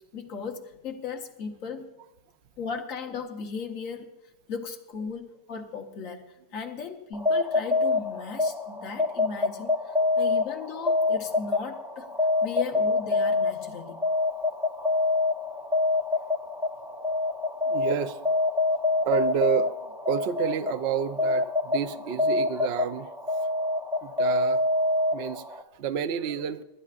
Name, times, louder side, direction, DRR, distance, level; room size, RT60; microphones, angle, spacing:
voice 1, 0.1-1.9 2.6-4.1 4.5-12.1 12.4-14.0, left 5 dB, 55° left, 3 dB, 1.5 m, -37 dB
sound 1, 7.1-25.6, left 3 dB, 5° right, 0.4 m, -26 dB
voice 2, 17.7-18.5 19.0-23.5 24.0-24.6 25.1-26.6, right 9 dB, 65° right, 10 dB, 0.6 m, -30 dB
26.5 x 11.5 x 2.5 m, 0.99 s
omnidirectional pair, 1.8 m